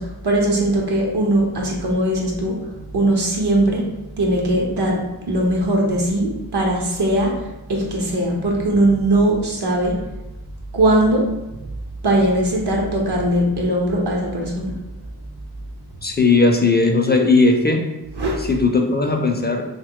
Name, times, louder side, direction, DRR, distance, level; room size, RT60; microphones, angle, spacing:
voice 1, 0.0-3.9 4.2-10.0 10.7-11.3 12.0-14.8 18.1-18.4, right 1 dB, 75° right, -1 dB, 0.7 m, -20 dB
voice 2, 16.0-17.8 18.4-19.7, left 3 dB, 25° left, 2 dB, 0.3 m, -17 dB
2.9 x 2.2 x 3.6 m, 1.0 s
wide cardioid pair, 55°, 40 cm